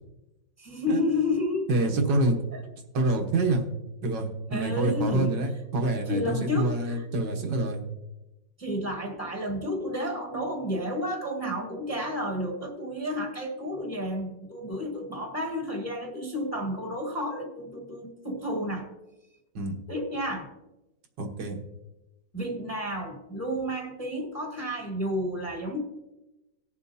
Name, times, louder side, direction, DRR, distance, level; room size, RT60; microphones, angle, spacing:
voice 1, 0.6-1.7 4.5-5.4 6.1-7.0 8.6-18.9 19.9-20.5 22.3-25.8, left 1 dB, 10° left, 1 dB, 1.2 m, -31 dB
voice 2, 1.7-2.4 2.9-3.7 4.0-7.8 19.6-19.8 21.2-21.6, right 2 dB, 75° right, 2 dB, 1.9 m, -26 dB
19.0 x 7.1 x 2.7 m, 0.99 s
omnidirectional pair, 2.0 m